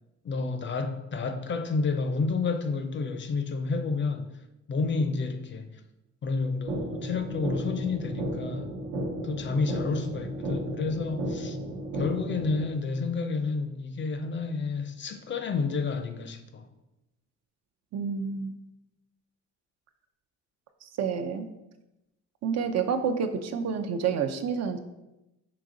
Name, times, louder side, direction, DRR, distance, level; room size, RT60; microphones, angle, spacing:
voice 1, 0.2-4.4 4.7-5.8 6.2-8.7 9.2-11.6 11.9-16.7, left 4 dB, 40° left, 0.5 m, -30 dB
sound 1, 6.7-12.7, right 1 dB, 75° right, 0.9 m, -33 dB
voice 2, 17.9-18.6 20.8-21.5 22.4-24.8, right 6 dB, 60° right, 0.5 m, -29 dB
5.1 x 2.8 x 3.7 m
cardioid pair, 90°, 30 cm